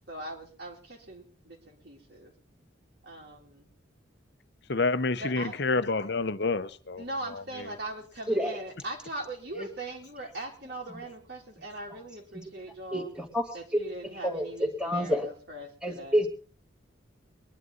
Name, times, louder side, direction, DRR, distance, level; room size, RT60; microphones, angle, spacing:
voice 1, 0.1-2.3 3.0-3.7 5.1-5.6 7.0-13.1 13.5-16.2, right 1 dB, 60° right, 0 dB, 3.2 m, -40 dB
voice 2, 4.7-7.0, left 3 dB, 55° left, 13 dB, 0.9 m, -28 dB
voice 3, 12.9-13.4 13.7-13.8 14.2-14.5 14.8-15.3 15.8-16.3, equal, 5° right, 4 dB, 2.3 m, -27 dB
23.0 x 11.0 x 4.0 m, 0.37 s
head